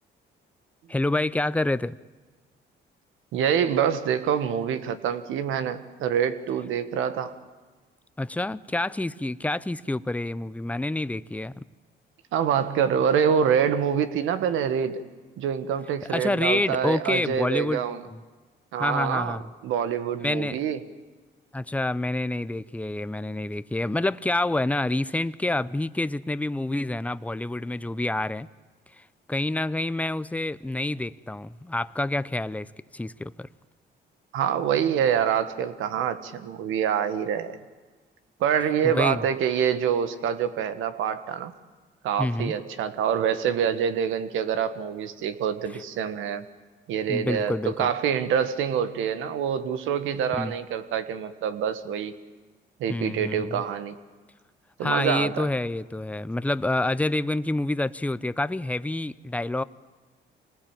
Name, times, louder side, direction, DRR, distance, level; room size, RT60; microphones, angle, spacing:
voice 1, 0.9-2.0 8.2-11.5 16.1-17.8 18.1-18.2 18.8-19.4 20.2-20.6 21.5-28.5 29.0-29.1 29.3-32.7 32.9-33.5 38.8-39.2 42.2-42.5 47.1-47.9 50.4-50.5 52.9-53.6 54.8-59.6, left 2 dB, 5° left, 15 dB, 0.7 m, -27 dB
voice 2, 3.3-7.3 12.3-15.0 15.4-18.0 18.7-20.8 34.3-37.6 38.4-41.5 42.0-46.4 46.9-52.1 52.8-53.9 54.8-55.5, right 8 dB, 90° right, 11 dB, 1.6 m, -26 dB
26.0 x 19.5 x 9.0 m, 1.4 s
cardioid pair, 90°, 20 cm